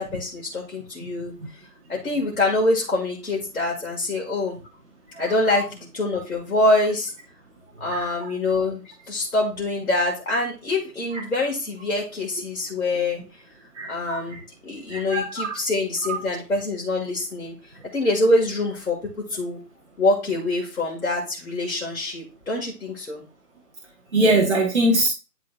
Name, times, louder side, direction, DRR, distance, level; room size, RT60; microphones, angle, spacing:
voice 1, 0.0-1.3 1.9-4.6 5.2-7.1 7.8-8.8 9.1-13.2 13.9-14.4 14.6-19.0 19.3-19.6 20.0-23.2, left 2 dB, 55° left, -3 dB, 2.2 m, -25 dB
voice 2, 5.1-5.6 7.9-8.3 11.1-11.2 13.7-14.4 14.9-15.5 16.0-16.2 24.1-25.1, right 1 dB, 45° right, 0 dB, 1.3 m, -23 dB
11.5 x 4.0 x 2.4 m, 0.32 s
figure-of-eight pair, 155°, 49 cm